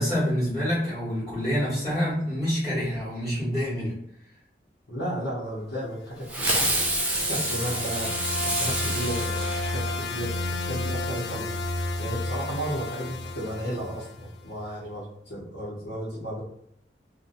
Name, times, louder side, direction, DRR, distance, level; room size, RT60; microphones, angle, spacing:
voice 1, 0.0-3.9, equal, 10° left, -11 dB, 1.1 m, -27 dB
voice 2, 4.9-6.9 7.3-9.2 9.6-11.5 12.0-16.4, equal, 90° left, -9 dB, 0.8 m, -34 dB
sound 1, 6.2-14.4, left 2 dB, 65° left, 0.3 m, -32 dB
Fireworks, 6.3-10.2, right 1 dB, 10° right, 0.4 m, -28 dB
2.6 x 2.2 x 2.5 m, 0.75 s
head